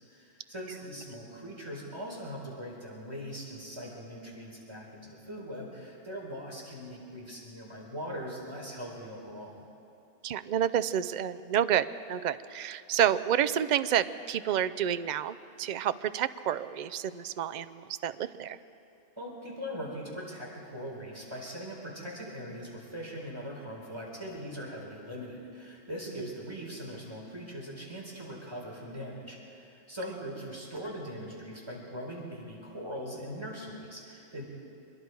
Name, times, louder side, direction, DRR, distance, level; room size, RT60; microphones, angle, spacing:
voice 1, 0.1-9.6 19.2-34.4, equal, 20° right, -3 dB, 4.3 m, -41 dB
voice 2, 10.2-18.6, right 10 dB, 65° right, 13 dB, 0.4 m, -29 dB
25.0 x 22.0 x 4.8 m, 2.6 s
omnidirectional pair, 1.4 m